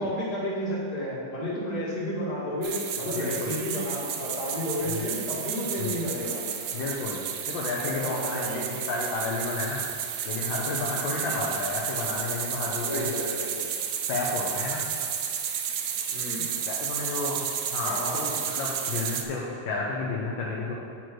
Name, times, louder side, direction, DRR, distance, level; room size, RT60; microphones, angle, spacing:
voice 1, 0.0-6.4 7.8-8.8 11.2-11.4 12.8-13.6 16.1-16.4 17.8-18.4, left 1 dB, 50° left, -8 dB, 2.6 m, -32 dB
sound 1, 2.6-19.2, right 8 dB, 75° right, 0.8 m, -32 dB
voice 2, 3.1-3.5 4.9-5.0 5.8-6.0 6.7-7.2 7.5-9.8 10.2-13.1 14.1-14.9 16.6-20.7, left 3 dB, 75° left, -3 dB, 1.6 m, -31 dB
9.2 x 4.6 x 4.6 m, 2.4 s
omnidirectional pair, 2.2 m